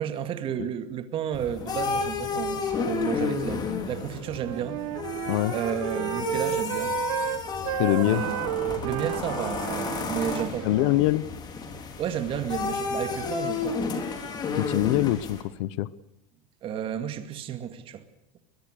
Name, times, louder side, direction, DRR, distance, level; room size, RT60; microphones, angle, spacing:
voice 1, 0.0-4.8 5.5-6.9 8.0-8.5 8.8-10.8 12.0-13.9 16.6-18.0, right 9 dB, 30° right, 10 dB, 2.2 m, -32 dB
sound 1, 1.3-15.4, left 5 dB, 25° left, 3.5 m, -32 dB
Wind instrument woodwind instrument, 4.2-11.1, right 18 dB, 70° right, 1.1 m, -32 dB
voice 2, 7.8-8.2 10.6-11.2 14.5-15.9, left 16 dB, 65° left, 19 dB, 1.0 m, -24 dB
22.5 x 21.5 x 6.7 m, 0.88 s
supercardioid pair, 160°, 17 cm